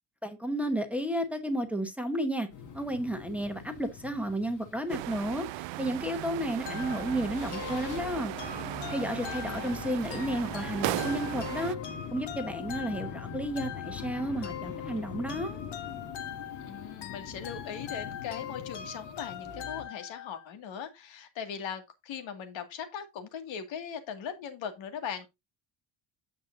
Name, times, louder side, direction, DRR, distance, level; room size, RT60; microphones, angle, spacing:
voice 1, 0.2-2.5 2.7-8.3 8.9-11.8 12.1-15.6, right 1 dB, 5° right, 1.0 m, -32 dB
sound 1, 2.5-19.8, left 6 dB, 40° left, 2.0 m, -43 dB
sound 2, 4.9-11.8, right 18 dB, 75° right, 0.5 m, -37 dB
sound 3, 6.7-20.5, left 9 dB, 65° left, 1.6 m, -42 dB
voice 2, 9.2-9.8 16.6-25.3, left 7 dB, 80° left, 2.2 m, -39 dB
9.5 x 7.7 x 2.6 m
cardioid pair, 180°, 45 cm